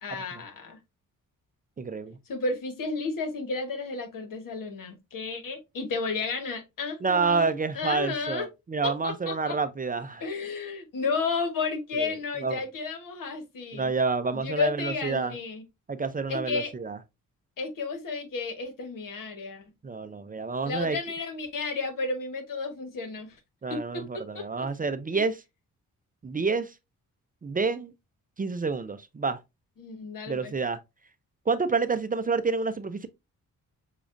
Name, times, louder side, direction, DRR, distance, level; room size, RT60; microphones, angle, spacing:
voice 1, 0.0-0.8 2.3-7.5 7.7-8.5 8.8-9.6 10.2-13.9 14.3-15.6 16.3-16.7 17.6-19.6 20.6-23.4 23.7-24.7 29.8-30.5, left 4 dB, 70° left, 1.3 m, -32 dB
voice 2, 1.8-2.2 7.0-10.2 12.0-12.1 12.4-12.6 13.7-15.3 15.9-17.0 19.8-21.0 23.6-25.4 26.2-26.7 27.4-27.9 28.4-29.4 30.3-30.8 31.5-33.1, right 4 dB, 25° right, 0.5 m, -28 dB
6.9 x 2.4 x 2.6 m
cardioid pair, 70°, 34 cm